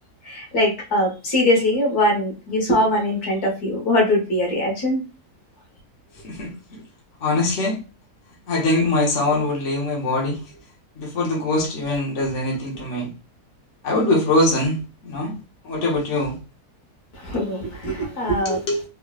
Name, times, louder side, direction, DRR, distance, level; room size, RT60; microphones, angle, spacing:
voice 1, 0.2-5.0 17.2-18.6, left 1 dB, 70° left, 1.7 m, -21 dB
voice 2, 6.2-6.8 7.2-7.8 8.5-10.4 11.0-13.1 13.8-15.3 15.6-16.3 18.4-18.8, left 2 dB, 50° left, 1.3 m, -22 dB
3.7 x 3.0 x 2.4 m
omnidirectional pair, 1.7 m